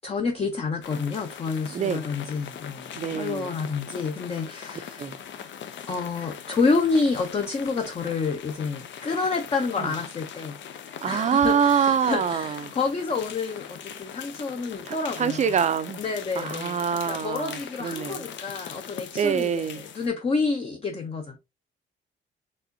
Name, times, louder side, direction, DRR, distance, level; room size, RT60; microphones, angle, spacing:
voice 1, 0.0-5.1 5.9-10.6 11.1-15.5 16.0-21.4, left 4 dB, 30° left, 0.7 m, -29 dB
sound 1, 0.8-20.1, left 8 dB, 65° left, 0.6 m, -41 dB
voice 2, 1.7-2.0 3.0-3.5 5.0-5.2 9.8-9.9 11.0-12.7 14.9-16.0 16.4-18.3 19.2-19.8, right 7 dB, 35° right, 0.5 m, -25 dB
4.1 x 3.5 x 2.7 m
cardioid pair, 90°, 20 cm